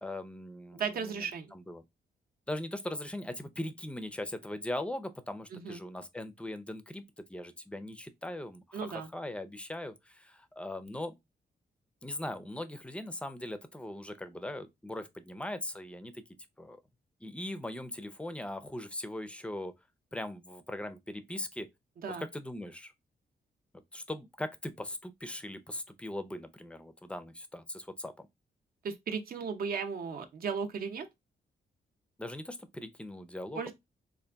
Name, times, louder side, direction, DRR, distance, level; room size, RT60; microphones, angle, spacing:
voice 1, 0.0-1.2 1.5-1.8 2.5-11.1 12.0-16.1 16.6-16.8 17.2-19.7 20.1-21.7 22.2-22.9 23.9-28.3 32.2-33.7, left 1 dB, 5° left, 0.4 m, -40 dB
voice 2, 0.8-1.5 5.5-5.8 8.7-9.1 22.0-22.3 28.8-31.1 33.5-33.7, right 6 dB, 60° right, 0.7 m, -35 dB
3.9 x 2.5 x 3.4 m
wide cardioid pair, 140°, 17 cm